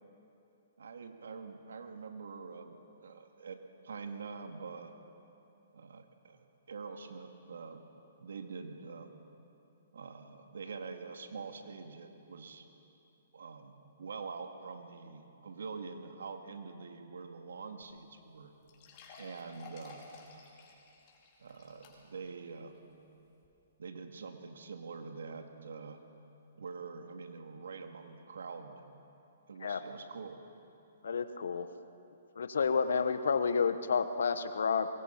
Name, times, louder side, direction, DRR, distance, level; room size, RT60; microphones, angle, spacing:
voice 1, 0.8-4.9 5.7-6.4 6.7-7.9 8.2-9.1 9.9-12.7 13.3-18.5 19.2-20.1 21.4-22.7 23.8-26.0 26.5-28.8 29.5-30.4, right 5 dB, 80° right, 5 dB, 2.2 m, -45 dB
sound 1, 17.8-17.9 18.2-18.3 18.7-22.3 22.7-22.8 23.4-23.5, left 3 dB, 40° left, 4.9 m, -54 dB
voice 2, 31.0-31.7 32.3-34.9, left 5 dB, 75° left, 11 dB, 1.2 m, -30 dB
24.0 x 22.5 x 5.9 m, 2.8 s
hypercardioid pair, 135°, 0 cm